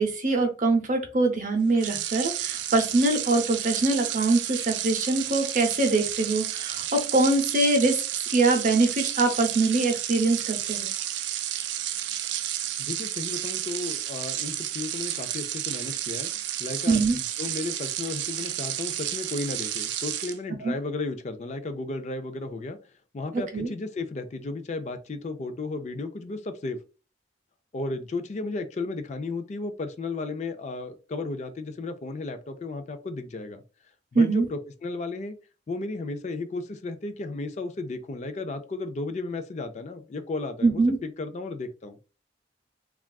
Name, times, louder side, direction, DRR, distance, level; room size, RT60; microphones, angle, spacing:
voice 1, 0.0-8.0 8.3-10.9 16.9-17.2 20.6-20.7 23.3-23.7 34.1-34.5 40.6-41.0, right 3 dB, 45° right, 4 dB, 0.7 m, -23 dB
sound 1, 1.7-20.4, right 12 dB, 75° right, 0.3 m, -31 dB
voice 2, 12.8-16.3 16.6-22.8 23.1-26.8 27.7-33.6 34.1-35.3 35.7-42.0, left 3 dB, 40° left, 8 dB, 0.3 m, -34 dB
3.4 x 2.4 x 2.2 m, 0.33 s
head